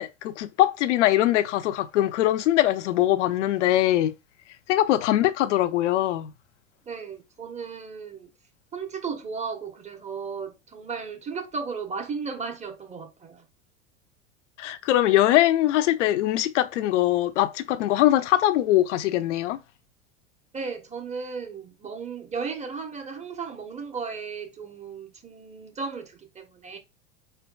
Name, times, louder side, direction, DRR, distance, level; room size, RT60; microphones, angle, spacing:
voice 1, 0.0-4.1 4.7-6.3 14.6-19.6, left 14 dB, 65° left, 0.7 m, -22 dB
voice 2, 6.9-8.3 8.7-13.4 20.5-26.8, right 5 dB, 15° right, 1.1 m, -35 dB
5.0 x 4.5 x 2.3 m
figure-of-eight pair, 85°, 39 cm